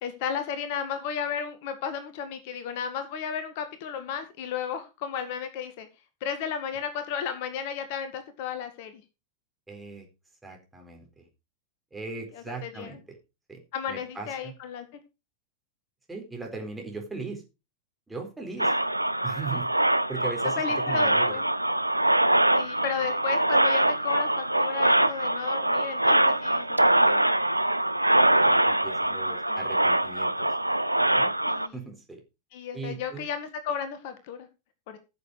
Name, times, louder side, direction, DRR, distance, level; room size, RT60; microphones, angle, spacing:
voice 1, 0.0-5.9 6.2-9.0 12.3-13.0 13.7-14.9 18.6-18.8 20.6-21.4 22.5-27.3 29.3-29.6 31.5-31.7 32.5-34.5 34.9-35.0, left 7 dB, 50° left, 9 dB, 1.8 m, -34 dB
voice 2, 9.7-10.1 10.4-11.3 11.9-13.2 13.5-13.6 13.9-14.5 16.1-17.4 18.1-18.7 19.2-19.7 20.1-21.4 28.3-30.5 31.0-31.3 31.7-32.2 32.7-33.3, right 4 dB, 10° right, 2 dB, 4.1 m, -39 dB
sound 1, 18.6-31.7, right 1 dB, 85° right, 0.5 m, -23 dB
15.0 x 7.0 x 4.7 m, 0.28 s
figure-of-eight pair, 90°, 0 cm